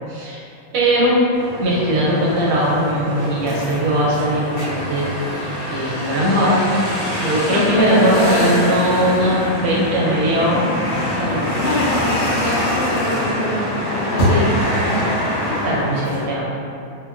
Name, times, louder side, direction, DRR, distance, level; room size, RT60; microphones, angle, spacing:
voice 1, 0.1-0.4 0.7-1.2 1.6-6.6 7.2-10.7 11.2-11.4 15.6-16.5, right 1 dB, 80° right, -6 dB, 1.5 m, -19 dB
sound 1, 1.3-16.2, left 1 dB, 85° left, 1.8 m, -24 dB
voice 2, 7.5-8.8 11.6-15.2, left 1 dB, 55° left, -14 dB, 1.1 m, -23 dB
3.9 x 2.2 x 2.3 m, 2.6 s
omnidirectional pair, 2.2 m